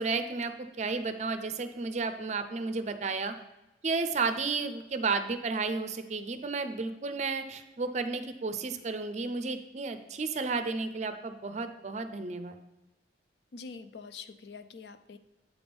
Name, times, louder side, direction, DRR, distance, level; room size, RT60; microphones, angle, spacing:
voice 1, 0.0-3.3 3.8-12.6, right 4 dB, 40° right, 9 dB, 0.5 m, -32 dB
voice 2, 13.5-15.2, left 5 dB, 70° left, 11 dB, 0.5 m, -45 dB
8.2 x 3.5 x 5.1 m, 0.97 s
head